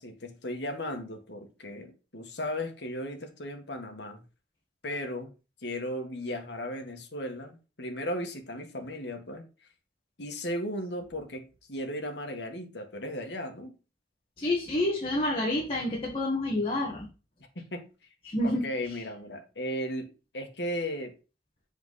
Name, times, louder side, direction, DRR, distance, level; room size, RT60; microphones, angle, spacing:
voice 1, 0.0-4.2 4.8-5.3 5.6-9.4 10.2-13.7 17.6-17.9 18.4-21.2, equal, 80° left, 1.9 m, -36 dB
voice 2, 14.4-17.1 18.2-18.6, left 1 dB, 30° left, 1.7 m, -28 dB
7.7 x 4.6 x 4.1 m
head